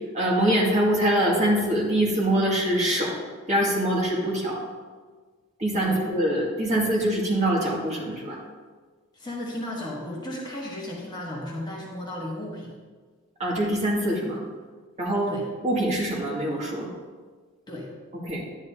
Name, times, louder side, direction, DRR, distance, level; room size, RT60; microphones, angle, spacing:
voice 1, 0.1-3.2 3.5-4.6 5.6-8.4 13.4-14.4 15.0-15.3 15.6-16.9 18.3-18.4, right 1 dB, 30° right, -4 dB, 2.1 m, -24 dB
voice 2, 9.1-12.7 15.3-15.5 17.7-17.9, left 1 dB, 20° left, -3 dB, 1.2 m, -34 dB
11.0 x 9.6 x 2.8 m, 1.5 s
head